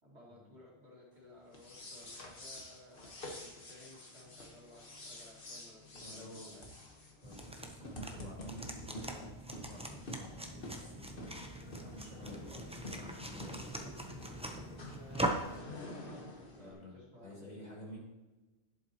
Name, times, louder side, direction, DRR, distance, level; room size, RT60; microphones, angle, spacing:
voice 1, 0.0-6.6 12.3-12.5 14.9-17.6, left 1 dB, 85° right, -5 dB, 2.9 m, -57 dB
sound 1, 1.5-16.7, left 1 dB, 55° left, 1.5 m, -49 dB
voice 2, 6.0-6.6 7.2-11.2 11.8-14.0 16.6-18.0, left 1 dB, 40° left, -5 dB, 2.6 m, -51 dB
sound 2, 7.2-15.6, right 1 dB, 5° right, 0.6 m, -42 dB
11.0 x 7.3 x 3.0 m, 1.1 s
omnidirectional pair, 1.1 m